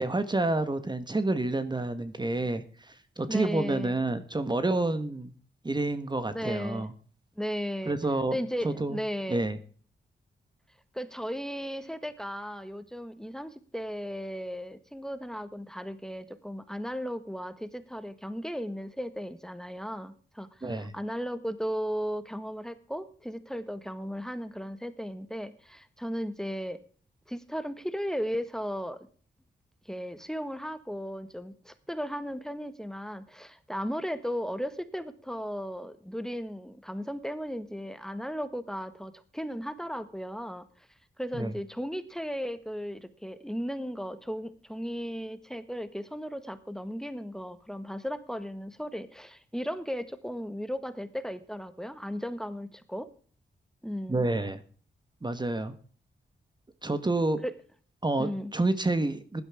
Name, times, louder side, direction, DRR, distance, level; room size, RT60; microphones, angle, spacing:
voice 1, 0.0-5.3 5.6-6.9 7.8-8.4 8.6-9.0 9.3-9.6 20.6-20.9 41.3-41.5 54.1-54.6 55.2-55.7 56.8-57.4 58.0-59.4, right 2 dB, 25° right, 11 dB, 1.4 m, -29 dB
voice 2, 3.3-4.0 6.3-6.9 7.4-7.9 8.3-9.5 10.9-26.8 27.3-29.1 29.8-40.6 41.2-53.1 53.8-54.2 57.4-57.5 58.2-58.5, equal, 5° left, 12 dB, 1.5 m, -36 dB
15.5 x 12.0 x 3.6 m, 0.43 s
cardioid pair, 70°, 19 cm